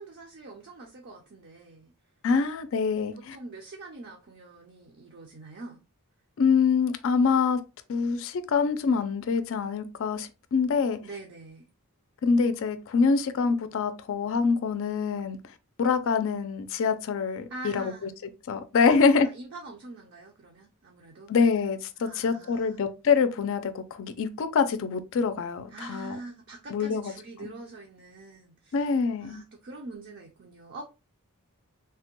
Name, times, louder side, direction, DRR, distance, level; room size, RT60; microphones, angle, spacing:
voice 1, 0.0-1.9 3.1-5.8 11.0-11.7 17.5-18.1 18.8-21.3 22.0-22.8 25.7-28.9 29.2-30.8, right 2 dB, 55° right, 0.5 m, -44 dB
voice 2, 2.2-3.4 6.4-7.6 7.9-11.0 12.2-15.4 15.8-17.9 18.5-19.3 21.3-26.2 26.7-27.1 27.4-27.5 28.7-29.4, left 5 dB, 65° left, 0.4 m, -25 dB
3.3 x 2.1 x 2.9 m
head